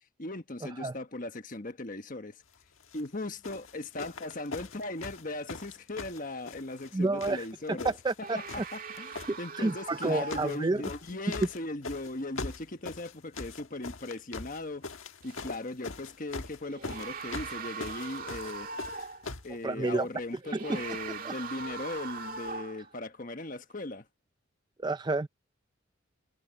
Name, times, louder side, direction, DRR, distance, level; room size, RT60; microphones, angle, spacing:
voice 1, 0.2-2.4 2.9-7.9 8.2-18.7 19.2-24.1, left 2 dB, 40° left, 1.3 m, -38 dB
sound 1, 2.8-3.1 3.4-6.9 7.2-8.2 8.5-9.3 9.9-10.6 10.8-19.5 20.4-20.5, left 3 dB, 75° left, 1.4 m, -41 dB
voice 2, 6.9-8.4 9.3-10.8 19.6-20.1 20.5-20.8 21.3-21.4 24.8-25.3, right 2 dB, 20° right, 0.4 m, -30 dB
sound 2, 8.2-11.0 15.2-15.4 16.6-19.3 20.4-22.9, right 4 dB, 45° right, 2.4 m, -40 dB
head